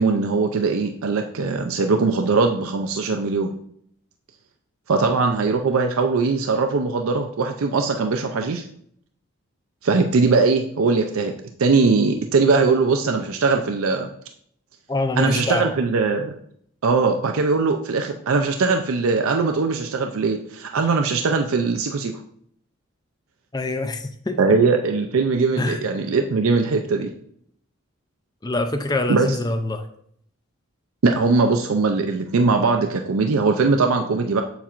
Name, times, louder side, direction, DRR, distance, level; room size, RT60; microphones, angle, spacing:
voice 1, 0.0-3.5 4.9-8.6 9.8-11.3 11.6-14.1 15.2-16.3 16.8-22.1 24.4-27.1 29.1-29.3 31.0-34.4, right 4 dB, 85° right, 5 dB, 0.5 m, -20 dB
voice 2, 14.9-15.8 23.5-24.4 25.6-25.8 28.4-29.9, left 2 dB, 20° left, 8 dB, 0.4 m, -24 dB
7.2 x 7.0 x 2.5 m, 0.68 s
head